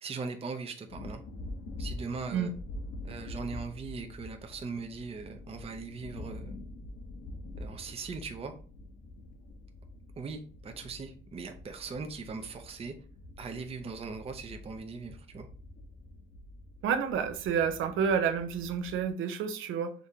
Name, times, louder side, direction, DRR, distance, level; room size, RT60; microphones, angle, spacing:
voice 1, 0.0-1.2 1.8-2.5 3.0-6.5 7.6-8.5 10.2-12.9 13.4-15.5, right 4 dB, 30° right, 0.6 m, -40 dB
sound 1, 0.9-19.1, left 2 dB, 70° left, 1.0 m, -46 dB
voice 2, 16.8-19.9, right 7 dB, 85° right, 0.7 m, -29 dB
5.1 x 3.5 x 2.8 m
cardioid pair, 90°, 20 cm